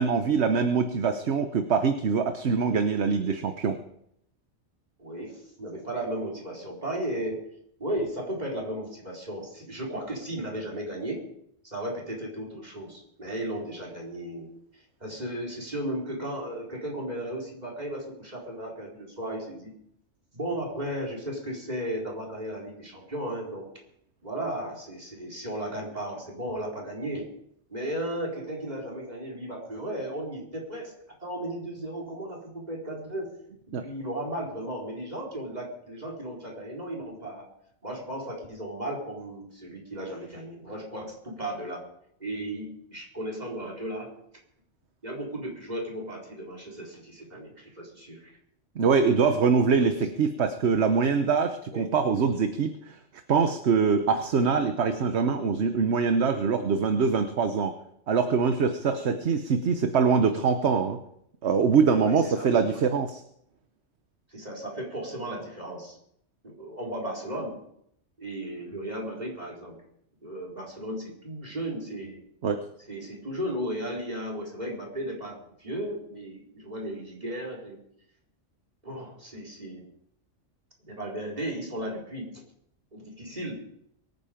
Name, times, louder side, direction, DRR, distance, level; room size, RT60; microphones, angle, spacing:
voice 1, 0.0-3.8 33.7-33.8 48.8-53.0 53.3-57.7 58.1-61.0 61.4-63.2 72.4-72.6, right 5 dB, 65° right, 8 dB, 1.2 m, -24 dB
voice 2, 5.0-7.5 7.8-11.2 11.6-14.5 15.0-19.7 20.3-23.7 24.2-27.3 27.7-30.9 31.2-33.3 33.8-37.5 37.8-41.8 42.2-44.1 45.0-48.3 49.8-50.0 51.7-51.8 58.8-59.2 62.0-62.8 64.3-66.0 66.4-67.5 68.2-69.8 70.2-72.2 72.9-77.8 78.8-79.9 80.8-82.3 82.9-83.6, right 1 dB, 35° right, 0 dB, 4.3 m, -35 dB
23.5 x 9.5 x 5.1 m, 0.73 s
omnidirectional pair, 1.2 m